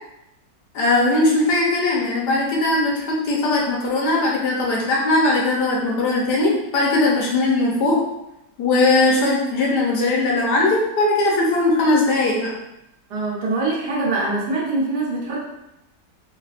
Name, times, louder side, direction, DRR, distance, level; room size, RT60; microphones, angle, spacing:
voice 1, 0.7-8.0 8.6-12.5, left 2 dB, 75° left, -2 dB, 1.3 m, -19 dB
voice 2, 13.1-15.4, right 2 dB, 70° right, -3 dB, 1.3 m, -23 dB
4.0 x 2.6 x 2.4 m, 0.87 s
omnidirectional pair, 1.9 m